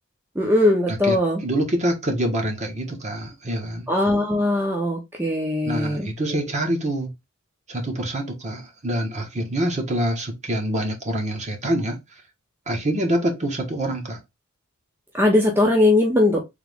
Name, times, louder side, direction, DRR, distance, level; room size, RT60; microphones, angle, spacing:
voice 1, 0.4-1.4 3.9-6.4 15.1-16.4, left 1 dB, 10° right, 0.7 m, -20 dB
voice 2, 1.4-3.9 5.6-7.1 7.7-12.0 12.7-14.2, right 1 dB, 35° right, 1.3 m, -25 dB
3.6 x 3.0 x 3.5 m
head